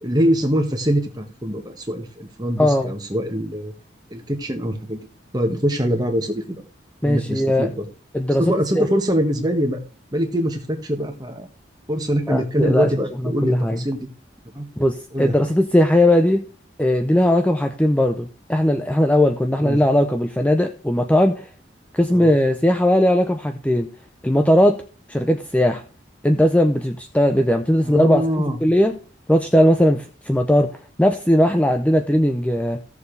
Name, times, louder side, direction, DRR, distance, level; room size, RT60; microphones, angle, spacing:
voice 1, 0.0-3.7 4.1-5.0 5.3-6.6 7.0-7.9 8.4-9.8 10.1-11.5 11.9-14.0 14.5-14.7 15.1-15.5 19.6-19.8 22.1-22.3 27.8-28.6, equal, 20° right, 4 dB, 1.6 m, -23 dB
voice 2, 2.6-2.9 7.0-7.7 8.1-8.9 12.3-12.9 13.2-13.8 14.8-16.5 16.8-21.5 21.9-23.9 24.2-24.8 25.1-25.8 26.2-29.0 29.3-32.8, left 1 dB, 5° left, 5 dB, 0.6 m, -18 dB
16.0 x 7.0 x 3.3 m, 0.39 s
head